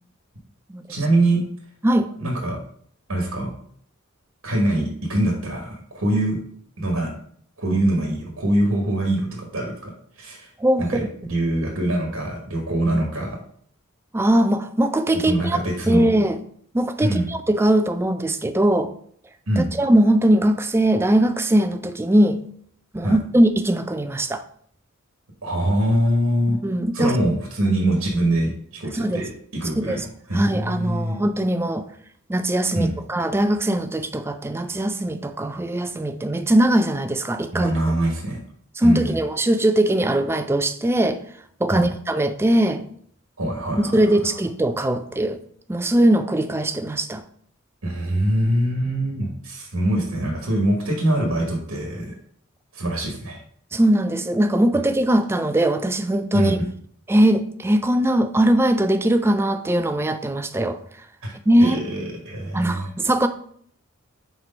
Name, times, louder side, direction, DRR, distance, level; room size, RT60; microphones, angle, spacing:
voice 1, 0.9-1.4 2.2-2.6 3.1-3.5 4.4-6.4 6.8-7.1 7.6-10.5 10.8-13.4 15.2-16.1 17.0-17.3 19.5-19.7 23.0-23.2 25.4-26.6 26.9-31.2 32.7-32.9 37.5-38.4 38.8-39.2 41.7-41.9 43.4-44.4 47.8-52.1 52.7-53.4 56.3-56.7 61.2-61.3 61.6-62.9, right 1 dB, 75° right, 1.3 m, -23 dB
voice 2, 10.6-11.1 14.1-15.6 15.9-16.4 16.7-18.9 19.6-22.4 22.9-24.4 26.5-27.1 28.9-29.2 29.8-30.0 30.3-31.8 32.3-37.7 38.8-41.2 41.6-42.8 43.9-45.4 45.7-47.2 53.7-56.6 57.1-60.8 61.5-61.8 62.5-63.3, right 1 dB, 10° right, 0.3 m, -20 dB
4.5 x 4.2 x 5.2 m
head